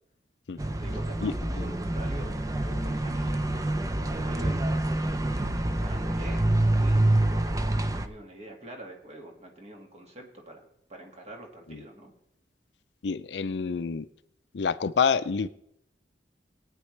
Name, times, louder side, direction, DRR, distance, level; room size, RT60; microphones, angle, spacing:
sound 1, 0.6-8.1, right 1 dB, 20° right, 0.6 m, -27 dB
voice 1, 0.6-3.7 4.0-4.6 5.1-12.1, right 1 dB, 40° right, 2.0 m, -45 dB
voice 2, 13.0-14.0 14.5-15.5, left 5 dB, 75° left, 0.5 m, -27 dB
20.0 x 9.2 x 3.3 m
head